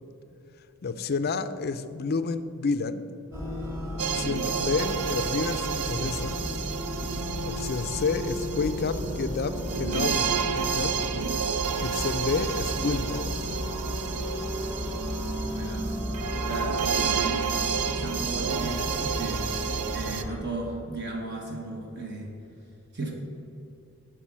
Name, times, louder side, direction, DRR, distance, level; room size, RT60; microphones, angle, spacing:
voice 1, 0.8-3.1 4.1-6.3 7.4-11.0 11.8-13.4, left 4 dB, 45° left, 12 dB, 0.4 m, -30 dB
sound 1, 3.3-20.4, equal, 10° right, 1.6 m, -33 dB
sound 2, 4.0-20.2, right 7 dB, 80° right, 0.5 m, -31 dB
voice 2, 15.5-15.9 16.3-17.5 17.8-19.5 19.9-22.3 22.9-23.1, right 2 dB, 50° right, 0 dB, 1.3 m, -36 dB
9.9 x 4.9 x 7.3 m, 2.8 s
head